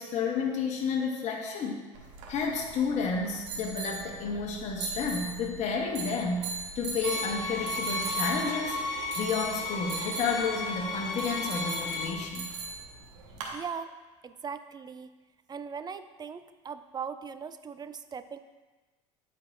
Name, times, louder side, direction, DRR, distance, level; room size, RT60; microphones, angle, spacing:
voice 1, 0.0-1.9 2.3-6.5 6.7-8.8 9.2-12.5, left 5 dB, 45° left, 0 dB, 1.2 m, -31 dB
sound 1, 1.9-13.5, right 4 dB, 75° right, 1.5 m, -39 dB
sound 2, 7.0-12.1, left 3 dB, 75° left, 1.4 m, -34 dB
voice 2, 13.5-13.9 14.2-15.1 15.5-18.4, right 6 dB, 25° right, 11 dB, 0.5 m, -39 dB
12.5 x 4.6 x 2.6 m, 1.2 s
hypercardioid pair, 75°, 16 cm